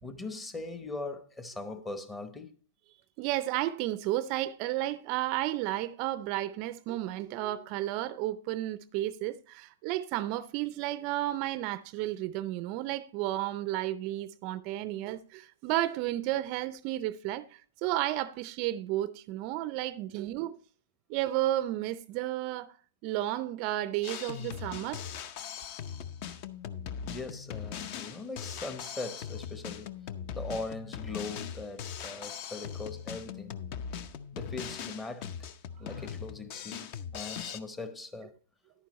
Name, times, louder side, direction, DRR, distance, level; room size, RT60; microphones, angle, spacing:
voice 1, 0.0-2.5 27.0-30.0 30.3-33.5 34.3-35.5 35.8-38.3, left 3 dB, 10° left, 0.9 m, -40 dB
voice 2, 3.2-20.6 21.1-22.8 23.0-25.1, right 14 dB, 40° right, 0.4 m, -32 dB
Drum kit, 24.0-37.6, left 8 dB, 40° left, 0.6 m, -40 dB
10.5 x 9.3 x 3.0 m
hypercardioid pair, 135°, 0 cm